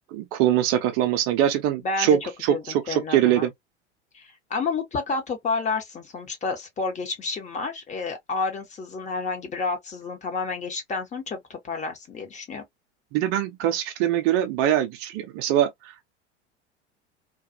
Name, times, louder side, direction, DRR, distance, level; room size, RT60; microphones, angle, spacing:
voice 1, 0.0-3.5 13.1-16.0, right 11 dB, 35° right, 0.6 m, -23 dB
voice 2, 1.8-3.5 4.1-12.6, left 4 dB, 20° left, 0.8 m, -30 dB
2.4 x 2.3 x 2.5 m
figure-of-eight pair, 80°, 35 cm